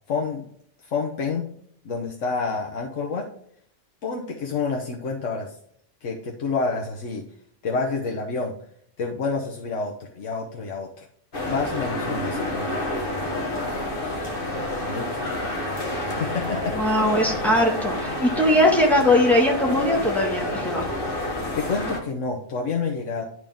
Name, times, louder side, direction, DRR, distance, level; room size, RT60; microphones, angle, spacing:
voice 1, 0.1-0.5 0.8-1.5 1.8-3.3 4.0-5.5 6.0-7.2 7.6-8.5 9.0-11.1 11.5-13.3 14.9-15.2 16.1-16.7 21.5-23.2, left 4 dB, 90° left, 0 dB, 1.4 m, -28 dB
sound 1, 11.3-22.0, left 1 dB, 45° left, 1.6 m, -28 dB
voice 2, 16.7-20.9, left 1 dB, ahead, -2 dB, 1.8 m, -20 dB
10.5 x 4.7 x 3.6 m, 0.64 s
omnidirectional pair, 1.2 m